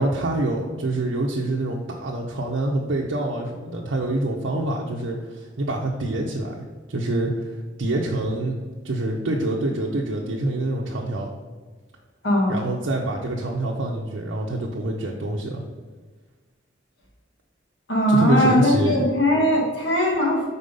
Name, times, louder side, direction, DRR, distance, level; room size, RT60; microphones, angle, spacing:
voice 1, 0.0-8.6 8.8-11.3 12.5-15.6 18.1-19.0, right 2 dB, 85° right, -2 dB, 0.7 m, -26 dB
voice 2, 12.2-12.6 17.9-20.5, left 1 dB, 75° left, -2 dB, 1.7 m, -20 dB
5.4 x 4.2 x 5.2 m, 1.4 s
head